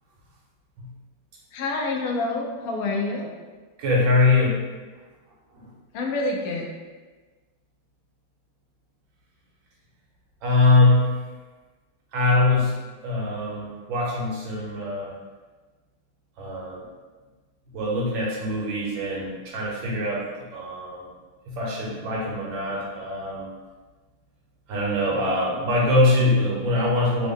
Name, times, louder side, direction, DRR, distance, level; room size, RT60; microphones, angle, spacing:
voice 1, 1.5-3.3 5.9-6.7, left 2 dB, 85° left, 0 dB, 0.7 m, -27 dB
voice 2, 3.8-4.6 10.4-11.1 12.1-12.8 13.0-15.1 16.4-16.8 17.7-20.3 20.5-21.1 21.5-23.5 24.7-27.3, left 2 dB, 75° right, -4 dB, 1.5 m, -22 dB
3.6 x 2.1 x 3.5 m, 1.3 s
omnidirectional pair, 2.2 m